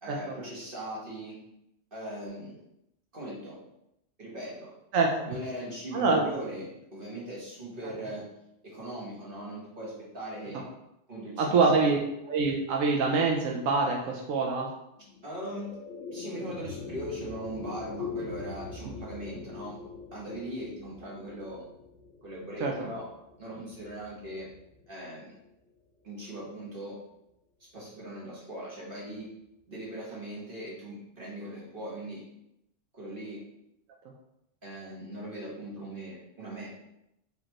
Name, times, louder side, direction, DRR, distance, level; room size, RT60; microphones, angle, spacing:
voice 1, 0.0-1.4 1.9-2.6 3.1-3.6 4.2-4.7 5.3-8.3 8.6-10.6 11.1-11.8 15.2-15.7 16.1-19.8 20.1-21.6 22.2-23.1 23.4-24.5 24.9-25.4 26.0-27.0 27.6-29.3 29.7-32.2 32.9-33.4 34.6-36.7, right 1 dB, 45° right, -5 dB, 1.2 m, -39 dB
voice 2, 4.9-5.3 5.9-6.2 7.8-7.9 11.4-12.0 12.3-14.7 22.6-22.7, right 4 dB, 90° right, 0 dB, 1.0 m, -25 dB
sound 1, 15.0-25.5, left 5 dB, 70° left, 0.9 m, -43 dB
4.9 x 3.3 x 2.9 m, 0.82 s
omnidirectional pair, 1.3 m